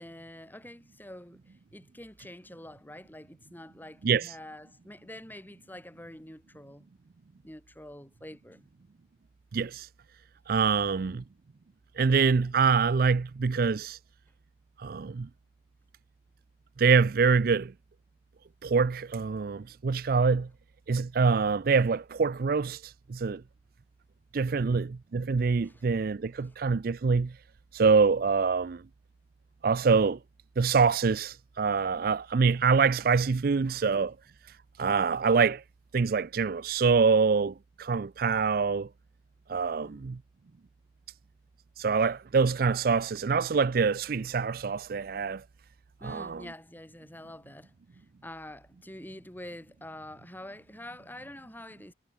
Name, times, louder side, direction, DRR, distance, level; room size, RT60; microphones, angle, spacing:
voice 1, 0.0-6.9 7.4-8.7 10.7-11.2 24.5-24.8 25.6-25.8 26.3-26.6 39.8-40.1 46.0-51.9, left 1 dB, 10° left, 3.5 m, -47 dB
voice 2, 9.5-9.9 10.5-11.2 12.0-14.0 14.8-15.3 16.8-17.7 18.6-20.5 20.9-23.4 24.3-27.3 27.7-28.8 29.6-30.2 30.6-34.1 34.8-35.6 35.9-38.9 39.5-40.2 41.8-45.4 46.0-46.4, right 5 dB, 55° right, 0.4 m, -25 dB
head